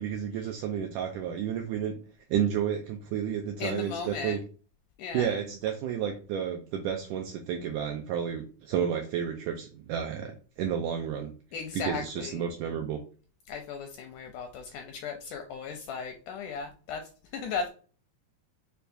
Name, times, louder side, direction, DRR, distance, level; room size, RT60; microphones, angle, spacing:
voice 1, 0.0-2.0 2.3-4.4 5.1-11.4 11.7-13.0, right 8 dB, 80° right, 3 dB, 1.8 m, -31 dB
voice 2, 3.6-4.4 5.0-5.3 11.5-12.4 13.5-17.0 17.3-17.7, left 5 dB, 85° left, 5 dB, 1.8 m, -36 dB
6.7 x 2.3 x 2.6 m, 0.38 s
omnidirectional pair, 4.0 m